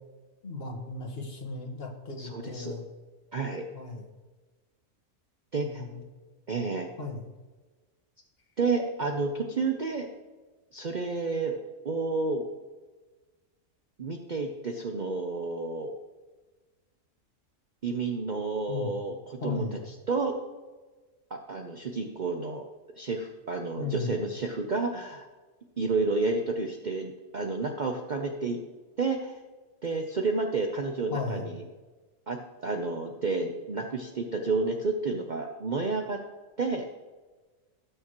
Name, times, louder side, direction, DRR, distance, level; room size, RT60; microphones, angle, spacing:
voice 1, 0.4-2.8 3.7-4.0 5.6-6.0 7.0-7.3 18.7-18.9 19.4-19.8 23.8-24.1 31.1-31.5, left 3 dB, 45° left, 0 dB, 1.8 m, -35 dB
voice 2, 2.2-2.8 3.3-3.7 5.5-5.8 6.5-6.9 8.6-10.1 10.7-11.5 11.8-12.4 14.0-15.9 17.8-19.6 20.1-20.4 21.3-22.6 23.0-25.3 25.8-28.6 29.0-29.4 29.8-31.6 32.3-36.2 36.6-36.9, right 3 dB, 40° right, 3 dB, 0.8 m, -30 dB
18.5 x 6.5 x 3.1 m, 1.3 s
omnidirectional pair, 1.4 m